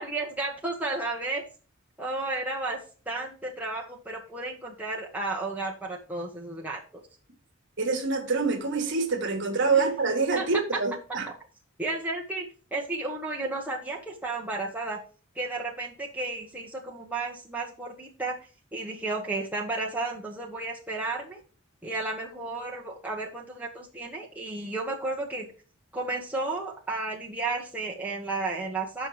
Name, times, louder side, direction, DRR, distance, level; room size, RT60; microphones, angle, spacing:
voice 1, 0.0-1.4 2.0-2.8 3.1-7.0 9.7-9.9 10.3-10.5 11.8-12.4 12.7-15.0 15.3-18.4 18.7-21.4 21.8-25.5 25.9-29.1, right 2 dB, 5° right, 1.0 m, -33 dB
voice 2, 7.8-11.3, right 4 dB, 55° right, 1.4 m, -26 dB
6.3 x 5.3 x 4.8 m
head